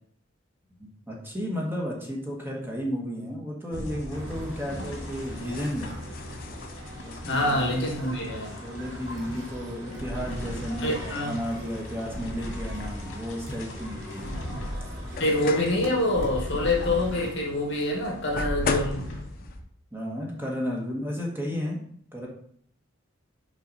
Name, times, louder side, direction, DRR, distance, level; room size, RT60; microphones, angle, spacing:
voice 1, 0.8-5.9 7.0-7.6 8.0-14.3 19.9-21.8 22.1-22.3, equal, 10° right, -2 dB, 1.3 m, -33 dB
sound 1, 3.7-19.6, equal, 75° left, 1.9 m, -38 dB
sound 2, 4.1-17.3, equal, 70° right, 2.7 m, -41 dB
sound 3, 4.2-19.6, left 4 dB, 45° left, 0.5 m, -41 dB
voice 2, 7.2-8.5 10.8-11.4 15.2-19.1, left 1 dB, 60° left, 1 dB, 1.6 m, -26 dB
5.9 x 5.0 x 4.0 m, 0.62 s
head